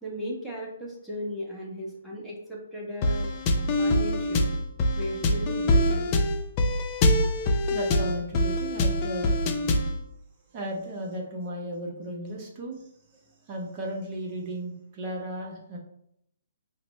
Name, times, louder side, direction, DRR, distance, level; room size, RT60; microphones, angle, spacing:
voice 1, 0.0-3.3 3.5-4.5 4.9-6.2, equal, 5° left, -5 dB, 0.9 m, -36 dB
sound 1, 3.0-10.0, left 1 dB, 30° left, 0.5 m, -24 dB
voice 2, 7.7-9.4 10.5-15.8, right 1 dB, 35° right, -1 dB, 0.7 m, -35 dB
4.2 x 2.0 x 3.0 m, 0.75 s
hypercardioid pair, 140°, 0 cm